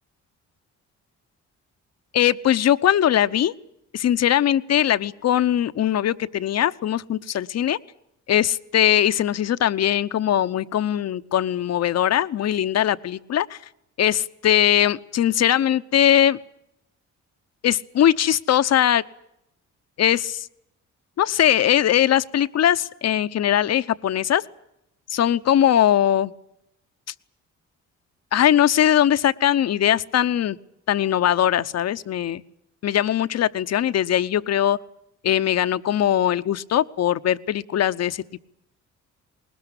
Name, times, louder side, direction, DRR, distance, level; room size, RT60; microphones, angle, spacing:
voice 1, 2.1-3.5 3.9-7.8 8.3-13.6 14.0-16.4 17.6-19.0 20.0-20.5 21.2-24.4 25.1-26.3 28.3-30.6 30.9-32.4 32.8-34.8 35.2-38.4, left 11 dB, 55° left, 13 dB, 0.9 m, -20 dB
20.5 x 19.5 x 9.9 m, 0.82 s
cardioid pair, 90°, 30 cm